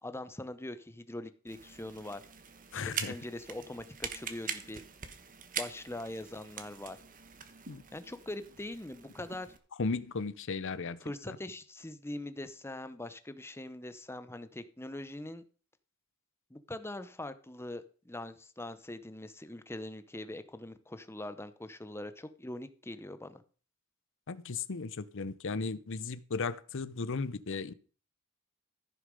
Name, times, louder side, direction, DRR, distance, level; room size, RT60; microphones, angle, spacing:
voice 1, 0.0-2.2 2.8-4.8 5.6-7.0 7.9-9.5 11.0-15.4 16.5-23.4, left 1 dB, 10° left, 0.8 m, -42 dB
sound 1, 1.5-9.6, right 7 dB, 40° right, 1.3 m, -43 dB
voice 2, 2.7-3.1 7.7-7.8 9.8-11.0 24.3-27.7, left 4 dB, 60° left, 0.7 m, -35 dB
14.5 x 6.5 x 5.3 m
head